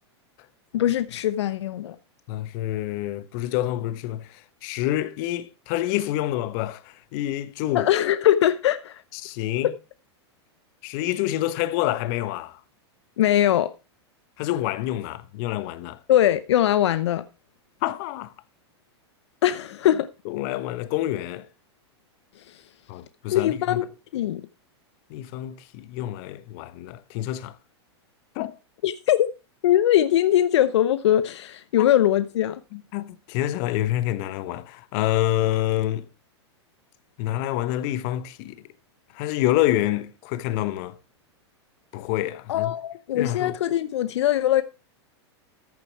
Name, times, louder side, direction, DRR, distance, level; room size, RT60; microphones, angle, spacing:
voice 1, 0.7-2.0 7.7-9.0 13.2-13.7 16.1-17.2 19.4-20.1 22.5-22.6 23.3-23.9 24.1-24.4 28.8-29.3 29.6-32.6 42.5-44.6, left 12 dB, 75° left, 0.7 m, -21 dB
voice 2, 2.3-7.9 9.1-9.7 10.8-12.6 14.4-16.0 17.8-18.3 20.2-21.5 22.9-23.8 25.1-27.6 28.3-28.6 31.8-31.9 32.7-36.1 37.2-38.6 39.1-41.0 41.9-42.7 43.1-43.5, left 14 dB, 50° left, 1.1 m, -27 dB
14.0 x 7.1 x 4.6 m
hypercardioid pair, 125°, 14 cm